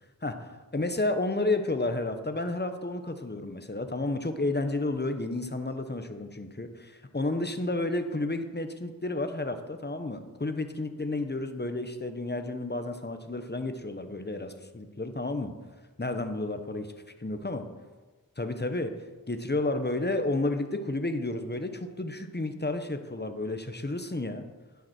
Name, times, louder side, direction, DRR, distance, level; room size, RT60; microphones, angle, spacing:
voice 1, 0.2-15.5 16.0-16.9 17.2-17.6 18.4-18.9 19.3-24.4, left 2 dB, 30° left, 7 dB, 1.1 m, -31 dB
11.0 x 9.6 x 4.5 m, 1.3 s
wide cardioid pair, 40°, 34 cm